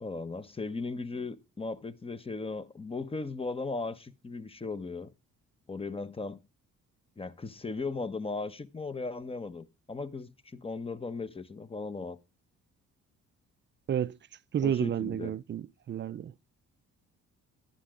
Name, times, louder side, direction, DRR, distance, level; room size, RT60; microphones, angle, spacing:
voice 1, 0.0-5.1 5.7-6.4 7.2-12.2 14.6-15.4, left 3 dB, 20° left, 1.1 m, -37 dB
voice 2, 14.5-16.3, right 9 dB, 40° right, 0.5 m, -31 dB
11.5 x 9.9 x 3.6 m
cardioid pair, 90°, 30 cm